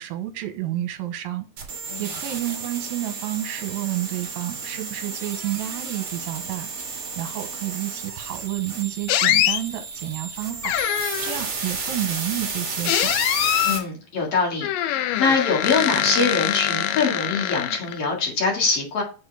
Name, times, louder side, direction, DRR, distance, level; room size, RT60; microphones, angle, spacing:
voice 1, 0.0-1.5 2.0-6.7 7.2-10.8 11.2-13.1, right 14 dB, 75° right, 2.5 m, -30 dB
sound 1, 1.6-13.8, right 4 dB, 45° right, 1.8 m, -32 dB
sound 2, 9.1-9.6 10.6-11.4 12.8-13.8 14.6-18.1, left 12 dB, 85° left, 1.9 m, -23 dB
voice 2, 13.6-14.7 15.2-19.0, left 4 dB, 45° left, 2.4 m, -23 dB
7.3 x 4.3 x 3.4 m
omnidirectional pair, 4.5 m